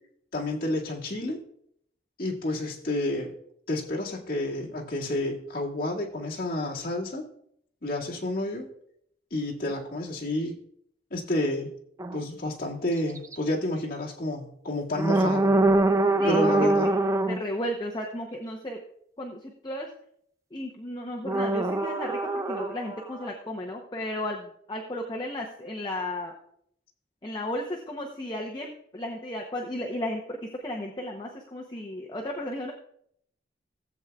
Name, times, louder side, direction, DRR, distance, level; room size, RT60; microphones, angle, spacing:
voice 1, 0.3-1.4 2.2-3.3 3.7-7.2 7.8-8.7 9.3-10.5 11.1-11.7 12.1-15.5 16.3-16.9, left 1 dB, 50° left, -4 dB, 2.1 m, -30 dB
sound 1, 12.0-12.2 13.2-13.4 15.0-17.4 21.3-23.3, right 2 dB, 15° right, 0.4 m, -24 dB
voice 2, 17.3-18.8 19.2-19.9 20.5-26.3 27.2-30.4 30.6-32.7, left 1 dB, 25° left, 0 dB, 0.8 m, -34 dB
16.0 x 7.9 x 2.3 m, 0.70 s
head